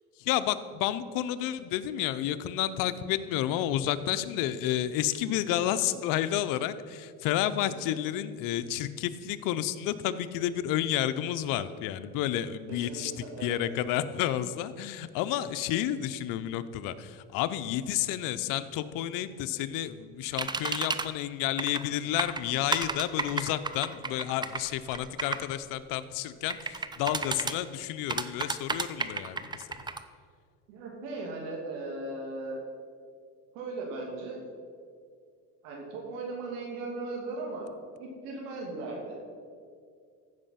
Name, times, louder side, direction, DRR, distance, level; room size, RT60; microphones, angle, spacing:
voice 1, 0.2-13.1 13.4-29.4, left 12 dB, 75° left, 12 dB, 0.7 m, -30 dB
voice 2, 7.6-7.9 12.7-13.6 30.7-32.6 33.5-34.4 35.6-37.7 38.0-39.2, right 2 dB, 85° right, -1 dB, 2.7 m, -38 dB
sound 1, 20.4-21.1 21.6-21.9 22.2-25.4 26.5-27.5 28.1-30.0, right 4 dB, 15° right, 0.5 m, -32 dB
14.5 x 5.4 x 5.8 m, 2.2 s
cardioid pair, 110°, 33 cm